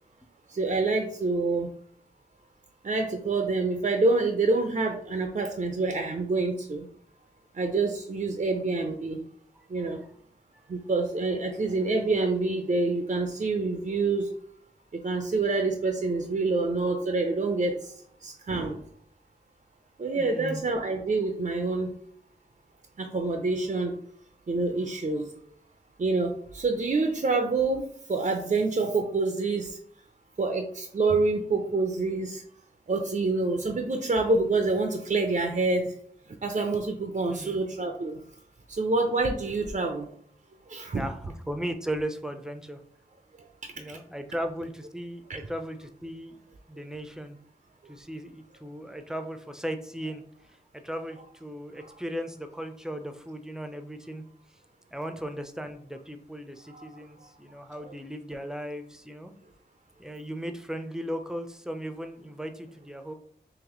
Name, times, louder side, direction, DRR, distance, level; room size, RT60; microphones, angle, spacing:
voice 1, 0.5-1.7 2.8-6.9 7.5-9.2 9.7-10.0 10.7-14.3 14.9-17.9 18.2-18.8 20.0-21.9 23.0-23.9 24.5-25.3 26.0-29.8 30.4-32.4 32.9-35.9 36.4-38.2 38.7-40.1 40.7-41.1 43.9-44.0 51.8-52.0 56.7-56.9 57.7-57.8, right 3 dB, 45° right, 4 dB, 0.5 m, -27 dB
voice 2, 20.2-20.6 37.3-37.6 40.9-42.8 43.8-46.4 46.7-47.4 47.9-50.2 50.5-54.2 54.9-59.3 60.0-63.1, equal, 5° right, 6 dB, 0.6 m, -37 dB
3.9 x 3.0 x 3.0 m, 0.63 s
cardioid pair, 45°, 18 cm